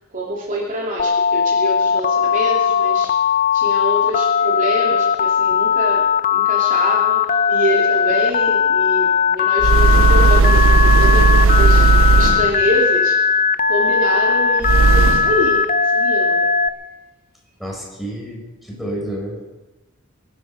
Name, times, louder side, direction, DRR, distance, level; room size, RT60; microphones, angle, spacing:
voice 1, 0.1-3.1 3.5-6.1 6.3-11.8 12.1-13.2 13.7-16.5, equal, 40° right, -2 dB, 2.8 m, -25 dB
Telephone, 1.0-16.7, left 6 dB, 40° left, 0.6 m, -18 dB
sound 1, 9.6-12.7 14.6-15.5, right 3 dB, 70° right, 0.6 m, -14 dB
voice 2, 17.6-19.4, right 1 dB, ahead, -2 dB, 5.0 m, -30 dB
24.0 x 11.0 x 5.5 m, 1.1 s
head